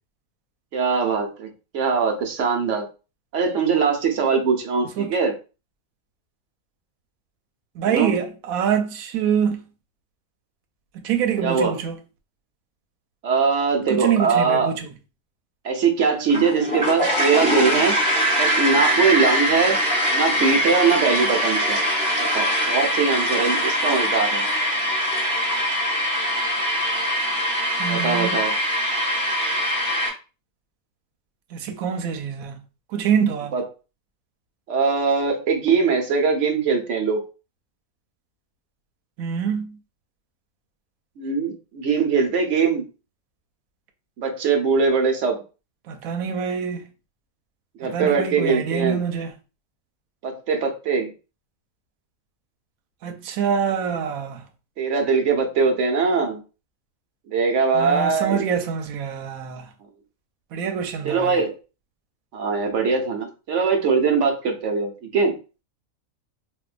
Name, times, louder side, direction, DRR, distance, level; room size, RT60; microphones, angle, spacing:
voice 1, 0.7-1.5 1.7-2.8 3.3-5.3 7.9-8.1 11.4-11.8 13.2-14.7 15.6-18.0 18.4-19.8 20.1-21.8 22.2-24.4 27.9-28.5 33.5-33.7 34.7-37.2 41.2-42.9 44.2-45.4 47.8-49.0 50.2-51.1 54.8-56.4 57.3-58.5 61.0-61.5 62.3-65.3, right 5 dB, 65° right, 1.0 m, -21 dB
voice 2, 7.8-9.6 10.9-12.0 13.9-14.9 27.8-28.4 31.5-32.6 32.9-33.5 39.2-39.7 45.9-46.8 47.9-49.3 53.0-54.4 57.7-59.7 60.5-61.4, right 7 dB, 85° right, 1.0 m, -25 dB
sound 1, 16.3-30.1, equal, 10° left, 1.0 m, -22 dB
4.5 x 2.2 x 2.4 m
omnidirectional pair, 1.5 m